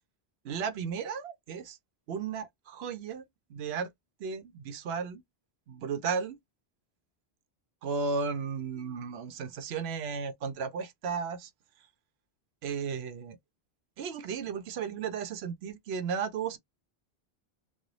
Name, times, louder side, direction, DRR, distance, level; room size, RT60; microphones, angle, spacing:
voice 1, 0.4-1.8 2.1-3.2 3.5-3.9 4.2-5.2 5.7-6.4 7.8-11.5 12.6-13.4 14.0-16.6, right 5 dB, 85° right, 0.9 m, -34 dB
3.1 x 2.3 x 3.8 m
omnidirectional pair, 1.0 m